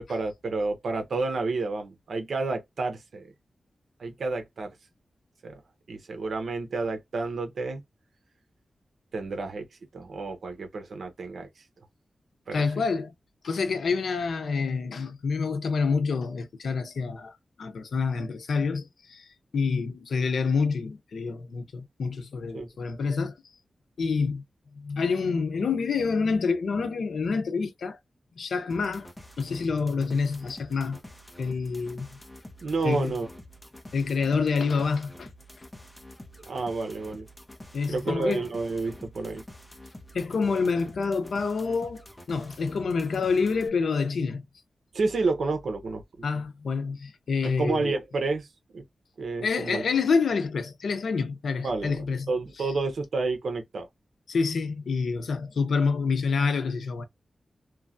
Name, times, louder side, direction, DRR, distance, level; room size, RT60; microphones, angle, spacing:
voice 1, 0.0-3.3 4.0-4.7 5.4-5.6 5.9-7.8 9.1-9.7 9.9-11.6 12.5-12.6 22.5-22.7 32.6-33.3 36.5-37.3 37.9-39.4 44.9-46.0 47.6-48.5 48.7-48.8 49.2-49.8 51.6-53.9, right 3 dB, 70° right, 0.7 m, -30 dB
voice 2, 12.5-13.1 13.4-19.3 19.5-23.3 24.0-24.4 24.7-28.0 28.4-29.1 29.4-31.0 31.4-32.1 32.8-33.1 33.9-35.3 37.7-38.5 40.1-44.4 46.2-48.0 49.4-52.3 54.3-57.0, left 5 dB, 85° left, 0.6 m, -27 dB
sound 1, 28.7-43.7, left 1 dB, 15° left, 0.7 m, -48 dB
3.0 x 2.2 x 2.5 m
wide cardioid pair, 130°, 0 cm